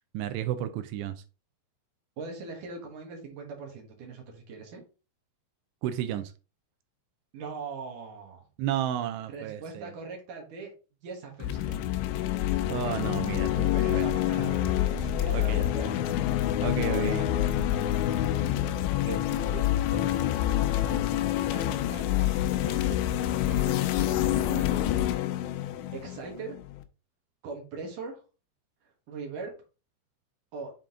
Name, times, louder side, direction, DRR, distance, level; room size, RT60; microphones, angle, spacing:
voice 1, 0.1-1.2 5.8-6.3 8.6-9.9 12.7-14.1 15.3-15.6 16.6-17.2, right 11 dB, 80° right, 10 dB, 2.6 m, -32 dB
voice 2, 2.2-4.8 7.3-8.4 9.3-10.7 11.0-12.0 13.7-16.2 16.9-17.7 19.0-21.0 21.5-23.0 23.5-24.8 25.9-26.6 27.4-28.2 29.1-29.5 30.5-30.7, right 4 dB, 60° right, 1 dB, 2.5 m, -41 dB
sound 1, 11.4-26.8, left 12 dB, 85° left, 2.9 m, -27 dB
7.5 x 3.8 x 3.7 m, 0.33 s
omnidirectional pair, 5.1 m